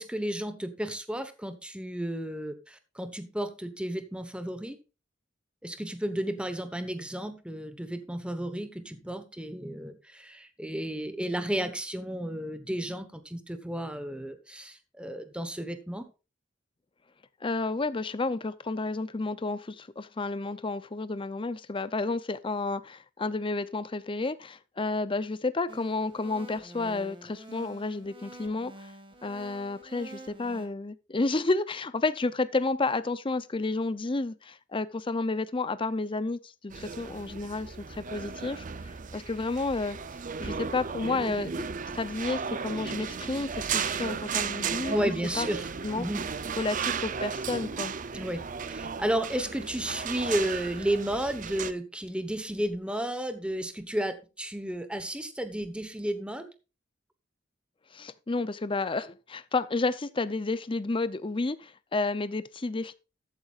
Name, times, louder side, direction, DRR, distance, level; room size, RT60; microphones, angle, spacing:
voice 1, 0.0-4.8 5.6-16.1 44.9-45.7 46.0-46.2 48.1-56.5, right 1 dB, 5° right, 1.1 m, -33 dB
voice 2, 17.4-28.7 29.2-40.0 40.4-41.7 41.9-45.0 45.4-45.5 45.8-46.1 46.6-47.9 57.9-62.9, left 3 dB, 30° left, 0.6 m, -31 dB
sound 1, 25.7-30.7, right 1 dB, 30° right, 1.9 m, -47 dB
sound 2, 36.7-51.7, right 6 dB, 45° right, 0.6 m, -35 dB
13.5 x 8.9 x 2.5 m
head